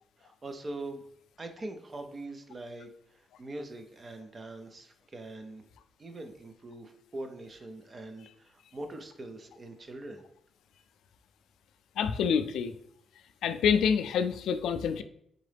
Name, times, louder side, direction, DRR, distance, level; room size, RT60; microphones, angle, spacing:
voice 1, 0.2-1.0 1.4-5.6 6.0-10.2, right 2 dB, 25° right, 6 dB, 0.4 m, -43 dB
voice 2, 12.0-12.7 13.4-15.0, left 7 dB, 80° left, 10 dB, 0.3 m, -27 dB
3.8 x 3.6 x 3.3 m, 0.71 s
wide cardioid pair, 175°, 0 cm